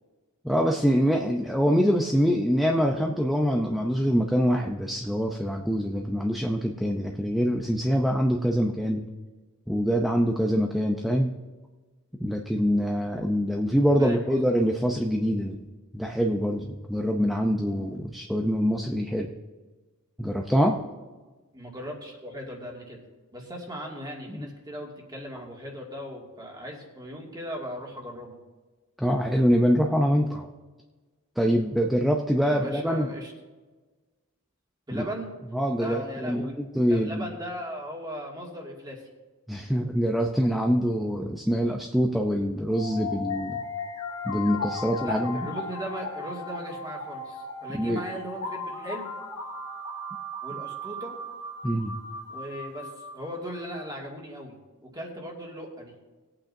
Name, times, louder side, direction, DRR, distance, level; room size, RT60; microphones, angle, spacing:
voice 1, 0.4-9.0 9.7-11.3 12.2-15.7 15.9-19.3 20.2-20.8 24.3-24.5 29.0-30.5 31.4-33.1 34.9-35.0 35.5-37.3 39.5-43.6 44.2-45.5 47.8-48.0 51.6-51.9, equal, ahead, 1 dB, 0.6 m, -24 dB
voice 2, 14.0-14.4 21.5-23.0 23.3-28.4 32.4-33.3 34.9-35.3 35.8-36.5 36.9-39.1 44.8-49.1 50.4-51.2 52.3-55.9, equal, 20° right, -1 dB, 2.2 m, -38 dB
sound 1, 42.7-53.6, left 2 dB, 75° left, 1.5 m, -36 dB
20.0 x 8.8 x 2.7 m, 1.3 s
head